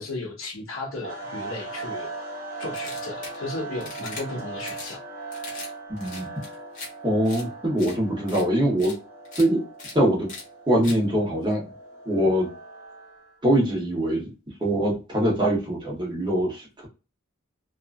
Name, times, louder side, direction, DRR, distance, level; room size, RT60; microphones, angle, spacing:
voice 1, 0.0-2.1 2.6-5.0, left 2 dB, 80° left, -1 dB, 0.9 m, -35 dB
sound 1, 1.0-13.4, right 3 dB, 45° right, 1.0 m, -39 dB
sound 2, 2.7-3.4 3.8-4.2 4.6-4.9 5.3-5.7 6.0-6.9 7.2-7.4 7.8-7.9 8.3-8.4 8.8-8.9 9.2-9.4 9.8-9.9 10.3-10.4 10.8-11.0, left 3 dB, 40° left, 1.2 m, -39 dB
voice 2, 5.9-6.3 7.0-8.9 9.4-9.6 9.9-10.3 10.7-11.7 12.1-12.5 13.4-14.3 14.6-16.9, right 1 dB, 20° right, -2 dB, 1.1 m, -23 dB
2.8 x 2.5 x 2.3 m, 0.31 s
head